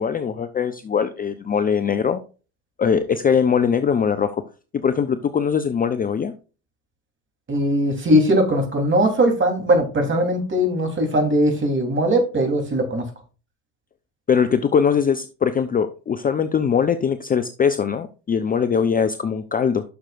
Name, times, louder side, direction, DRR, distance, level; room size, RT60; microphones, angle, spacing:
voice 1, 0.0-2.2 2.8-4.4 4.7-6.3 14.3-19.8, left 7 dB, 20° left, 11 dB, 0.6 m, -21 dB
voice 2, 7.5-13.1, equal, 30° right, 4 dB, 3.3 m, -20 dB
11.5 x 6.5 x 2.5 m, 0.34 s
hypercardioid pair, 70°, 42 cm